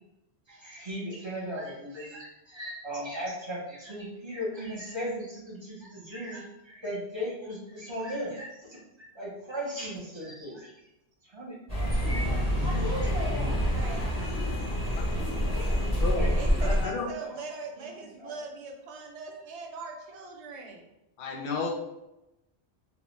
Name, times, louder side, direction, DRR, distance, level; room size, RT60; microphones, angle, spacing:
voice 1, 0.5-8.8 9.1-10.7 11.2-13.7 15.5-16.8 17.2-17.5 17.7-18.4, equal, 30° right, -6 dB, 0.6 m, -38 dB
sound 1, 11.7-16.8, equal, 15° left, 0.8 m, -27 dB
voice 2, 13.7-14.3 16.3-20.9, right 4 dB, 75° right, 2 dB, 0.8 m, -41 dB
voice 3, 15.9-16.3 16.6-17.1 21.2-21.7, left 4 dB, 60° left, 0 dB, 0.7 m, -32 dB
2.3 x 2.1 x 3.1 m, 0.92 s
omnidirectional pair, 1.2 m